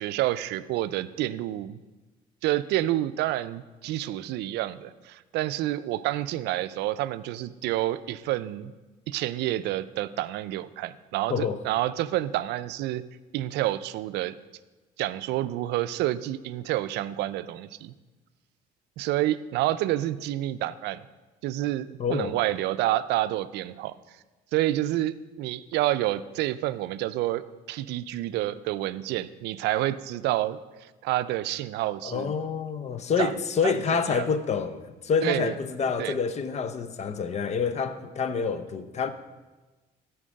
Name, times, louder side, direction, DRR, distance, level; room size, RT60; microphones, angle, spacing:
voice 1, 0.0-1.8 2.4-8.7 9.1-13.0 13.3-14.3 15.0-17.9 19.0-21.0 21.4-23.9 24.5-30.6 31.0-32.3 33.2-33.3 33.6-33.7 34.1-34.3 35.2-35.5 36.0-36.1, right 15 dB, 80° right, 0.4 m, -28 dB
voice 2, 11.3-11.6 22.0-22.4 32.0-39.1, left 6 dB, 40° left, 0.8 m, -27 dB
13.5 x 4.7 x 6.4 m
cardioid pair, 110°, 17 cm